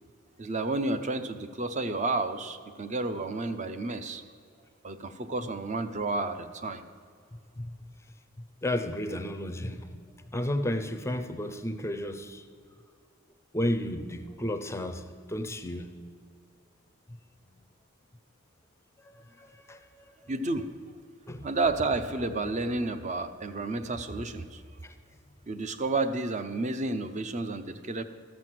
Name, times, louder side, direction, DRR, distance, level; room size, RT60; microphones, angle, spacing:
voice 1, 0.4-4.2 4.8-6.8 20.3-20.7 21.4-24.6 25.5-28.0, right 3 dB, 35° right, 10 dB, 0.6 m, -31 dB
voice 2, 8.6-9.9 10.3-12.4 13.5-15.9 19.0-20.1 21.3-21.5 24.8-24.9, left 1 dB, 10° left, 8 dB, 0.5 m, -33 dB
14.0 x 6.2 x 7.6 m, 2.3 s
head